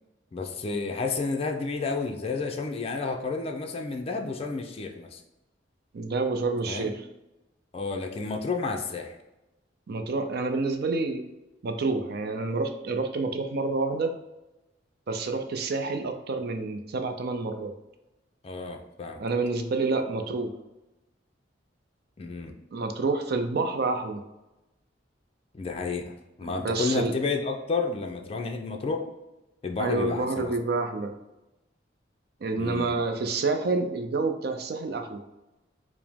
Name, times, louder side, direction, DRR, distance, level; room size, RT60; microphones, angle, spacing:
voice 1, 0.3-5.2 6.7-6.9 7.7-9.2 18.4-19.2 22.2-22.5 25.5-29.1 29.6-30.5 32.6-32.9, left 4 dB, 30° left, 3 dB, 0.4 m, -31 dB
voice 2, 5.9-7.0 9.9-11.2 11.6-14.1 15.1-17.7 19.2-20.5 22.7-24.2 26.6-27.1 29.8-31.1 32.4-35.2, right 3 dB, 55° right, 6 dB, 0.5 m, -28 dB
4.8 x 2.0 x 3.5 m, 0.97 s
head